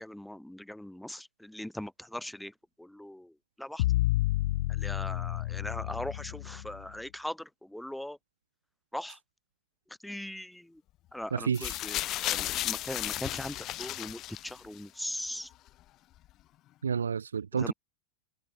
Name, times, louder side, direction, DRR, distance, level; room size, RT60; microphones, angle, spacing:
voice 1, 0.0-3.8 4.7-8.2 8.9-9.2 10.0-10.8 11.1-15.5 17.5-17.7, left 1 dB, ahead, 7.6 m, -40 dB
sound 1, 3.8-6.9, left 17 dB, 55° left, 1.0 m, -30 dB
voice 2, 11.3-11.8 16.8-17.7, right 6 dB, 70° right, 1.4 m, -30 dB
sound 2, 11.5-14.8 15.7-15.8, left 15 dB, 35° left, 1.5 m, -34 dB
figure-of-eight pair, 90°, 0 cm